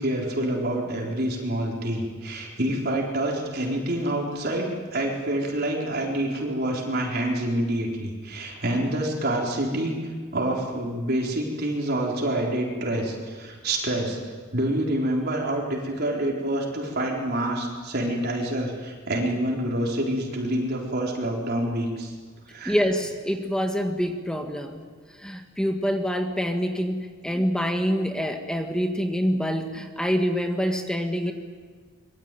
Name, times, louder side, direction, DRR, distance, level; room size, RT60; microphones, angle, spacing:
voice 1, 0.0-22.1 22.5-22.8, right 1 dB, 50° right, -2 dB, 4.2 m, -27 dB
voice 2, 22.6-24.8 25.1-31.3, equal, 5° left, 4 dB, 1.6 m, -26 dB
25.5 x 22.5 x 9.3 m, 1.5 s
head